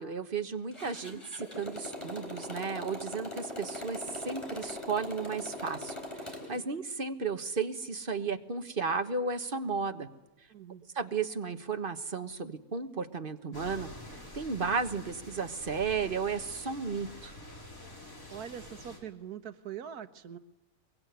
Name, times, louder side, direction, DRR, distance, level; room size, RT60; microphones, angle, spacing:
voice 1, 0.0-5.9 6.5-10.1 10.9-13.9 14.3-17.3, right 5 dB, 35° right, 8 dB, 1.4 m, -34 dB
Motorcycle, 0.7-6.6, left 1 dB, 20° left, 4.3 m, -41 dB
voice 2, 10.5-10.8 18.3-20.4, right 9 dB, 85° right, 11 dB, 1.6 m, -43 dB
sound 1, 13.5-19.0, left 1 dB, 65° left, 5.2 m, -47 dB
23.5 x 22.5 x 9.4 m, 1.0 s
omnidirectional pair, 1.6 m